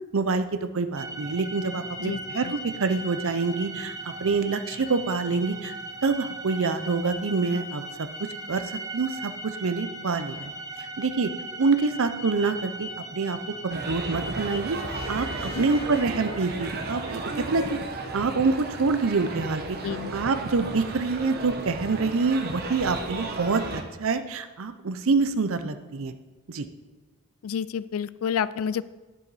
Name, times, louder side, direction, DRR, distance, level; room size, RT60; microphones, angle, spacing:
voice 1, 0.1-5.7 6.0-8.7 8.9-10.5 10.8-11.3 11.6-13.4 13.6-14.8 15.1-15.3 15.6-17.8 18.1-19.8 20.1-26.1 26.5-26.7, right 4 dB, 65° right, 10 dB, 0.6 m, -26 dB
sound 1, 1.0-17.1, right 2 dB, 15° right, 0.6 m, -38 dB
voice 2, 2.0-2.5 15.4-15.6 19.8-20.1 23.0-23.1 27.4-28.8, left 7 dB, 70° left, 17 dB, 0.4 m, -30 dB
sound 2, 13.7-23.8, right 3 dB, 45° right, 1.0 m, -34 dB
10.5 x 7.7 x 4.1 m, 1.2 s
head